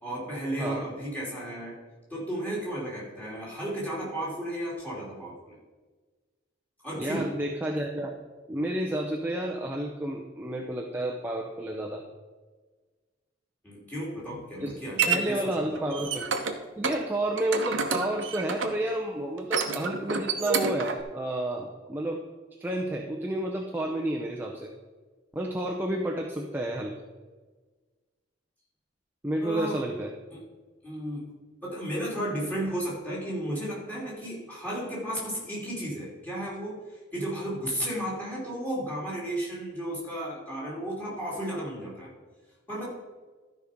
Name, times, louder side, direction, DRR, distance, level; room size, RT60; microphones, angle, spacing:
voice 1, 0.0-1.7 2.1-5.6 6.8-7.3 13.6-15.9 29.4-29.8 30.3-30.4 30.8-31.3 31.6-42.1 42.7-42.9, right 1 dB, 10° left, -5 dB, 3.0 m, -34 dB
voice 2, 7.0-8.1 8.5-12.0 14.6-14.7 15.1-16.3 16.8-22.2 22.6-24.7 25.3-26.9 29.2-30.1, right 1 dB, 10° right, 0 dB, 0.7 m, -30 dB
sound 1, 14.1-15.2 15.7-16.5 16.8-17.0 17.4-18.8 19.4-21.0, right 5 dB, 80° right, 1.0 m, -29 dB
12.5 x 5.4 x 5.1 m, 1.3 s
head